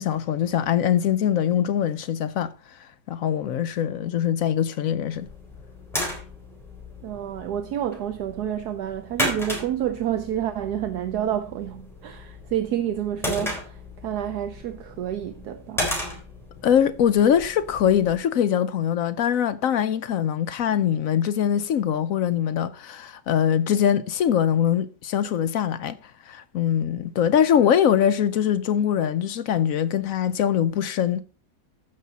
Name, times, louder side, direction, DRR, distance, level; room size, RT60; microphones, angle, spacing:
voice 1, 0.0-2.8 3.1-5.3 16.6-31.2, left 9 dB, 65° left, 0.9 m, -22 dB
sound 1, 5.1-18.2, left 1 dB, ahead, 3.6 m, -35 dB
voice 2, 7.0-15.9, right 10 dB, 70° right, 1.2 m, -29 dB
14.0 x 5.9 x 4.1 m
omnidirectional pair, 1.8 m